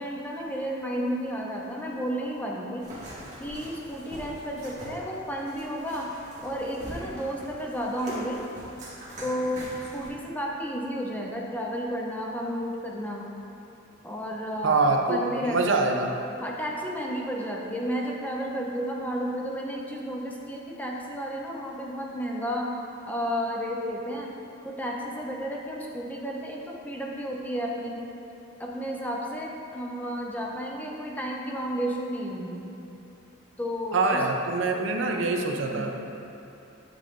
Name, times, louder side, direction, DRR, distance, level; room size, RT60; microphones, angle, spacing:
voice 1, 0.0-2.9 3.4-6.1 6.4-8.4 9.2-9.7 9.9-13.3 14.0-14.8 15.1-15.9 16.4-22.7 23.1-24.4 24.6-28.0 28.6-32.7 33.6-34.2 35.0-35.3 35.6-35.9, equal, 10° left, -1 dB, 0.4 m, -32 dB
sound 1, 2.8-10.1, equal, 40° right, 1.4 m, -42 dB
voice 2, 14.6-16.1 33.9-35.9, right 3 dB, 65° right, 3 dB, 0.5 m, -24 dB
9.0 x 5.5 x 2.5 m, 2.8 s
head